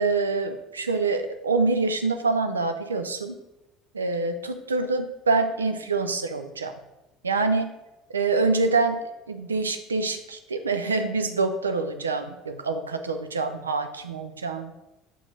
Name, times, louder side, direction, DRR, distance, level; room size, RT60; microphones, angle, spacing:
voice 1, 0.0-3.4 3.9-6.7 7.2-7.7 8.1-14.7, right 3 dB, 80° right, 7 dB, 0.5 m, -26 dB
6.1 x 4.5 x 4.0 m, 0.94 s
figure-of-eight pair, 60°, 0 cm